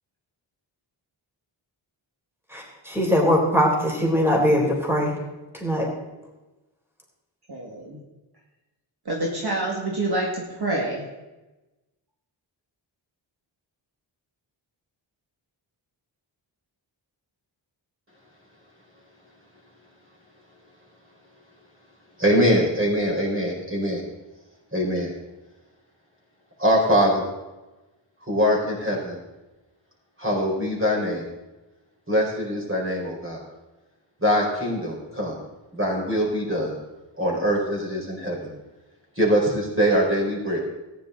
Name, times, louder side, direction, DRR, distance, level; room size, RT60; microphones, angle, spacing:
voice 1, 2.5-5.1 5.6-5.9, equal, 5° right, -2 dB, 3.7 m, -21 dB
voice 2, 7.5-8.0 9.1-11.0, right 2 dB, 55° right, -2 dB, 2.2 m, -27 dB
voice 3, 22.2-24.0 24.7-25.1 26.6-27.2 28.2-29.2 30.2-31.2 32.1-33.4 34.2-35.4 35.7-36.8 37.2-38.5 39.2-40.6, equal, 25° right, -2 dB, 4.7 m, -23 dB
14.5 x 10.0 x 4.0 m, 1.1 s
cardioid pair, 65°, 47 cm